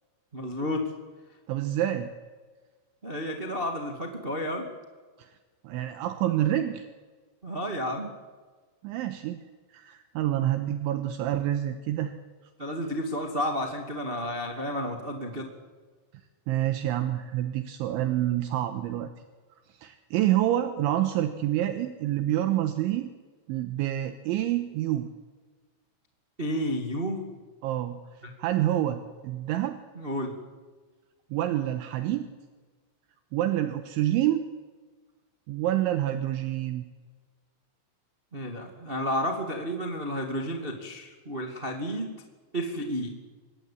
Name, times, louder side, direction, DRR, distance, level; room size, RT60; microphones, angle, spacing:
voice 1, 0.3-0.9 3.0-4.7 7.4-8.1 12.6-15.5 26.4-27.2 28.2-28.3 29.9-30.4 38.3-42.2 42.5-43.2, equal, 55° right, 2 dB, 0.6 m, -31 dB
voice 2, 1.5-2.1 5.2-5.3 5.6-6.9 8.8-9.4 9.7-12.1 16.5-19.1 19.8-23.1 23.5-25.1 27.6-28.0 28.4-29.8 31.3-32.3 33.3-34.4 35.5-36.8, right 13 dB, 75° right, 8 dB, 3.3 m, -27 dB
25.5 x 20.0 x 8.8 m, 1.4 s
omnidirectional pair, 5.9 m